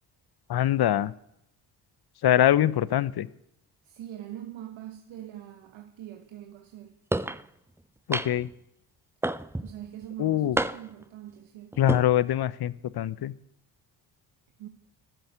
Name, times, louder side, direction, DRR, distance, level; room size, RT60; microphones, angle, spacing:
voice 1, 0.5-1.1 2.2-3.3 8.1-8.5 10.2-10.6 11.8-13.3, left 12 dB, 50° left, 0.9 m, -23 dB
voice 2, 3.8-6.9 9.6-11.9 14.6-14.7, right 11 dB, 70° right, 1.3 m, -43 dB
sound 1, 7.1-7.4 8.1-8.5 9.2-9.7 10.6-11.0 11.7-12.0, right 1 dB, 5° right, 0.6 m, -29 dB
13.0 x 10.5 x 8.1 m
hypercardioid pair, 50°, 49 cm